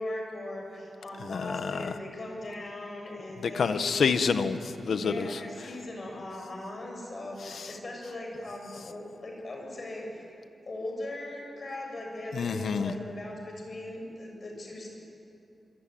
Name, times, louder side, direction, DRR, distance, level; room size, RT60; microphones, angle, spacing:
voice 1, 0.0-3.8 4.8-10.2 10.6-15.0, left 1 dB, 40° left, 1 dB, 7.4 m, -39 dB
voice 2, 1.2-1.9 3.4-5.3 12.3-12.9, left 5 dB, 70° left, 10 dB, 1.3 m, -28 dB
26.0 x 24.5 x 9.3 m, 2.7 s
wide cardioid pair, 145°, 0 cm